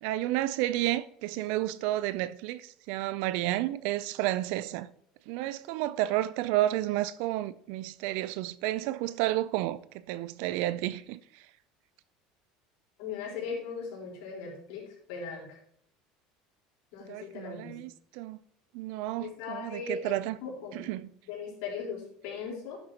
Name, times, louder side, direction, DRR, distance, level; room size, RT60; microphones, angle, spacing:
voice 1, 0.0-4.9 5.3-9.8 10.1-11.4 17.0-18.4 18.7-20.4 20.7-21.1, right 15 dB, 70° right, 0.4 m, -31 dB
voice 2, 13.0-15.6 16.9-17.7 19.2-20.1 20.4-20.9 21.2-22.8, left 5 dB, 75° left, 4.3 m, -38 dB
11.0 x 7.7 x 2.9 m
supercardioid pair, 125°, 2 cm